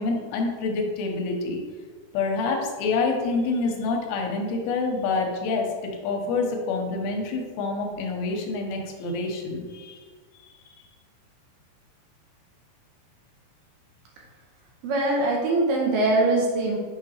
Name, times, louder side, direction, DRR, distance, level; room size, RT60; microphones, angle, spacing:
voice 1, 0.0-1.6 2.1-10.0, left 3 dB, 85° left, 2 dB, 2.6 m, -27 dB
voice 2, 14.8-16.8, right 2 dB, 75° right, -2 dB, 2.0 m, -22 dB
6.5 x 4.6 x 3.2 m, 1.5 s
omnidirectional pair, 4.6 m